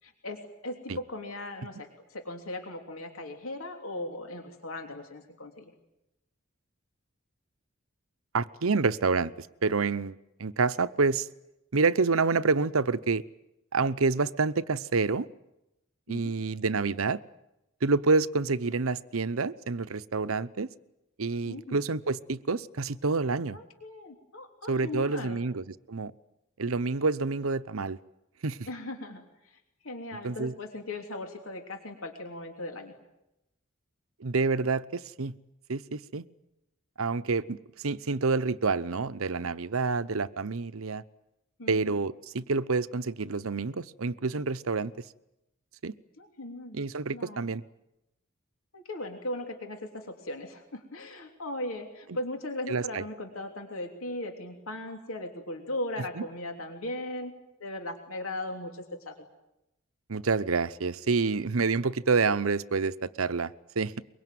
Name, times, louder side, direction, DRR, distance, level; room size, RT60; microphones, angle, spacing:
voice 1, 0.0-5.7 16.1-16.3 21.4-21.8 23.5-25.4 28.7-32.9 41.6-41.9 46.2-46.8 47.1-47.5 48.7-57.3 57.6-59.3, left 1 dB, 90° left, 4 dB, 3.2 m, -38 dB
voice 2, 8.3-11.3 11.7-13.2 13.7-15.3 16.1-17.2 17.8-20.7 21.2-23.6 24.7-26.1 26.6-28.0 28.4-28.6 30.2-30.5 34.2-35.3 35.7-36.2 37.0-41.0 41.7-45.1 45.8-45.9 46.7-47.6 52.7-53.0 56.2-56.3 60.1-64.0, right 4 dB, 80° right, 14 dB, 0.9 m, -28 dB
23.5 x 23.0 x 9.3 m, 0.91 s
head